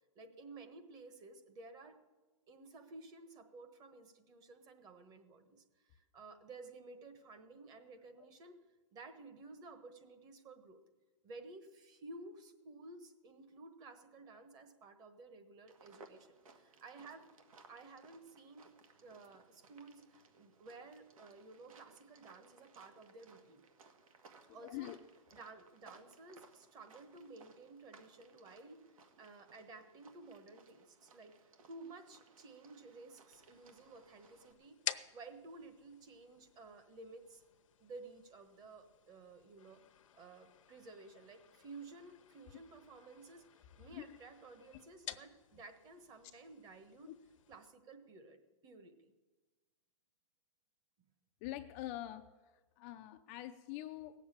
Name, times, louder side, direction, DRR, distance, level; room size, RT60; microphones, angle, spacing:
voice 1, 0.1-2.0 2.5-8.6 8.9-10.8 11.2-17.3 17.7-18.7 19.0-23.6 24.5-31.3 31.7-37.4 37.8-39.8 40.1-47.1 47.5-49.1, right 3 dB, 20° right, 8 dB, 1.2 m, -54 dB
sound 1, 15.7-34.5, right 4 dB, 80° right, 1.8 m, -63 dB
voice 2, 24.5-25.0 43.9-44.2 47.1-47.2 51.4-54.1, left 14 dB, 25° left, 7 dB, 0.5 m, -45 dB
sound 2, 33.3-47.7, left 10 dB, 65° left, 0.8 m, -51 dB
17.5 x 7.3 x 8.7 m, 1.2 s
hypercardioid pair, 155°, 18 cm